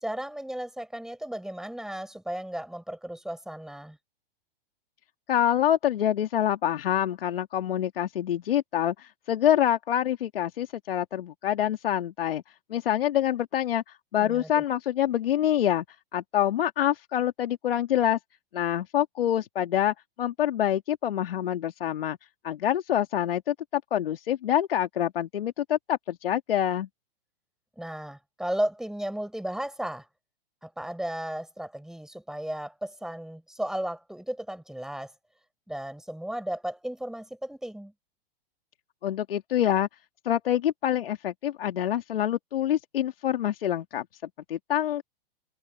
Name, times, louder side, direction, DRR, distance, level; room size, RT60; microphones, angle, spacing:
voice 1, 0.0-4.0 14.2-14.6 27.8-30.1 30.6-35.1 35.7-37.9, right 1 dB, ahead, 4.8 m, -34 dB
voice 2, 5.3-12.4 12.7-15.9 16.1-18.2 18.5-22.2 22.4-26.9 39.0-39.9 40.2-44.1 44.5-45.0, left 11 dB, 70° left, 2.1 m, -26 dB
hypercardioid pair, 115°, 29 cm